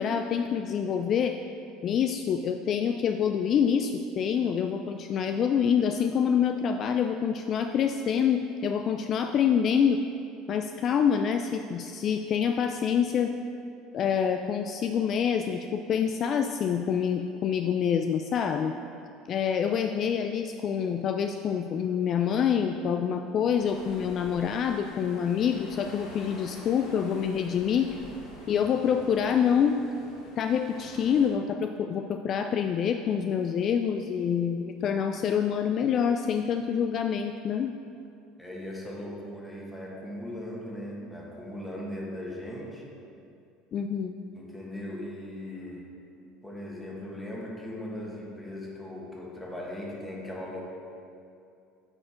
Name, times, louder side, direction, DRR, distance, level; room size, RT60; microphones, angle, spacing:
voice 1, 0.0-1.4 1.8-10.0 10.5-13.3 13.9-18.7 19.3-28.0 28.5-29.8 30.4-37.7 43.7-44.2, left 7 dB, 45° left, 6 dB, 0.3 m, -26 dB
sound 1, 23.5-31.3, left 1 dB, 75° left, 1.5 m, -47 dB
voice 2, 38.4-42.9 44.3-46.0 46.4-50.6, left 1 dB, 10° left, -3 dB, 1.5 m, -38 dB
8.7 x 4.4 x 4.4 m, 2.6 s
supercardioid pair, 100°, 0 cm